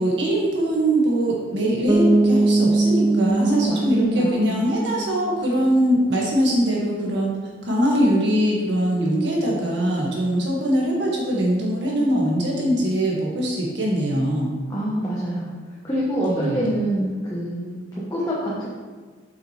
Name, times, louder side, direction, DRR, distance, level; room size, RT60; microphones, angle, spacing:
voice 1, 0.0-7.3 7.6-14.5 16.3-16.7, equal, 70° right, -3 dB, 1.9 m, -22 dB
Bass guitar, 1.9-5.6, right 2 dB, 15° right, 0.3 m, -21 dB
voice 2, 3.4-4.5 14.7-15.5 15.8-18.7, right 1 dB, 20° left, -7 dB, 1.1 m, -25 dB
7.6 x 6.2 x 3.3 m, 1.4 s
head